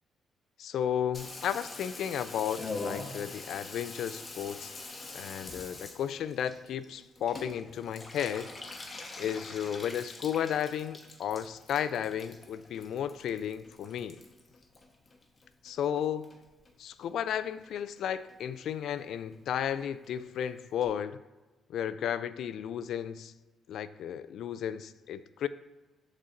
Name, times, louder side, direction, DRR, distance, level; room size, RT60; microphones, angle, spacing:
voice 1, 0.6-4.7 5.1-8.5 9.2-14.2 15.6-16.3 16.8-21.2 21.7-23.3 23.7-25.5, left 9 dB, 70° left, 14 dB, 0.3 m, -33 dB
Water tap faucet / Bathtub (filling or washing), 1.1-15.7 16.0-16.7 17.0-17.1 17.3-17.4 17.6-18.0 18.3-18.4 18.6-18.7 19.0-19.1 19.3-19.4 19.7-19.8 20.0-20.1 20.4-20.5 20.8-20.9, left 3 dB, 30° left, 1.1 m, -44 dB
12.5 x 4.2 x 2.6 m, 1.2 s
cardioid pair, 90°, 0 cm